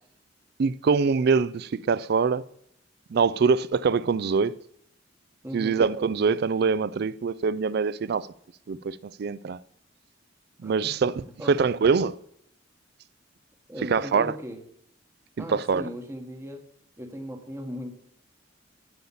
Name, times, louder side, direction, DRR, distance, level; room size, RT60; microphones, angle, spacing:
voice 1, 0.6-2.4 3.1-4.6 5.5-8.3 8.7-9.6 10.6-12.2 13.9-14.3 15.5-15.8, right 5 dB, 60° right, 0.4 m, -24 dB
voice 2, 5.4-5.8 10.6-11.0 11.4-11.7 13.7-14.6 15.4-16.7 17.0-17.9, equal, 15° right, 1.1 m, -38 dB
8.6 x 7.8 x 7.1 m
head